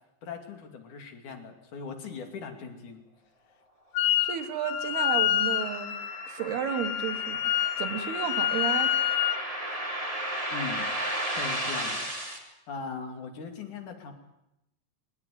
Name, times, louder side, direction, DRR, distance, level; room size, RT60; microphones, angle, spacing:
voice 1, 0.2-3.0 10.5-10.9 11.3-12.1 12.5-14.1, left 5 dB, 50° left, 5 dB, 3.6 m, -39 dB
Wind instrument woodwind instrument, 4.0-4.4 4.6-9.4, left 12 dB, 75° left, 1.9 m, -28 dB
voice 2, 4.2-5.9 6.3-7.4 7.8-8.9, right 8 dB, 70° right, 8 dB, 3.3 m, -32 dB
sound 1, 4.6-12.4, right 1 dB, 10° right, 3.3 m, -35 dB
21.5 x 19.0 x 9.4 m, 0.85 s
omnidirectional pair, 5.1 m